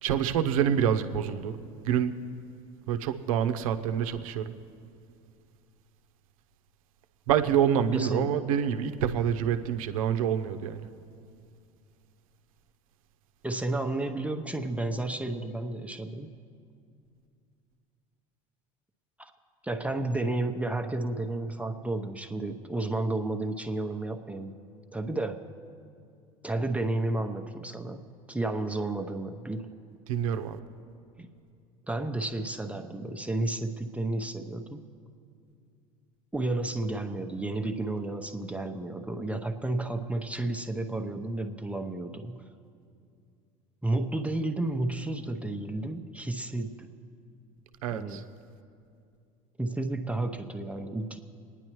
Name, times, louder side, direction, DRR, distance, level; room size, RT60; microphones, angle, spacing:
voice 1, 0.0-1.5 1.8-2.2 2.9-4.5 7.3-10.9 30.1-30.6 47.8-48.2, right 9 dB, 75° right, 8 dB, 0.8 m, -27 dB
voice 2, 7.9-8.4 13.4-16.3 19.2-19.3 19.6-24.6 24.9-25.4 26.4-28.0 28.3-29.7 31.2-31.3 31.9-34.8 36.3-42.5 43.8-46.9 47.9-48.3 49.6-51.2, right 2 dB, 5° right, 4 dB, 0.8 m, -32 dB
23.5 x 10.0 x 3.1 m, 2.4 s
hypercardioid pair, 80°, 18 cm